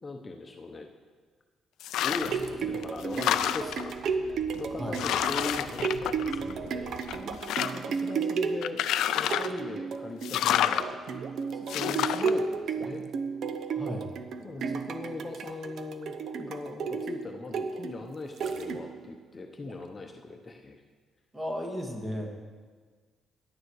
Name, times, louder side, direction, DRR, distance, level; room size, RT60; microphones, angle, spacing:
voice 1, 0.0-0.9 2.0-7.0 7.7-8.8 9.1-11.0 11.5-13.0 14.4-20.8, left 3 dB, 30° left, 4 dB, 0.8 m, -39 dB
sound 1, 1.8-2.5 2.8-3.9 4.5-4.6 4.9-6.7 7.0-8.0 8.6-9.6 10.2-10.9 11.7-12.3, left 11 dB, 85° left, 0.4 m, -29 dB
sound 2, 2.0-19.1 19.6-19.7, right 5 dB, 60° right, 0.7 m, -33 dB
sound 3, 2.0-7.3, right 2 dB, 85° right, 3.8 m, -51 dB
voice 2, 7.1-7.9 13.7-14.1 21.3-22.3, equal, 15° right, 2 dB, 1.7 m, -36 dB
11.0 x 9.4 x 4.7 m, 1.5 s
cardioid pair, 105°, 0 cm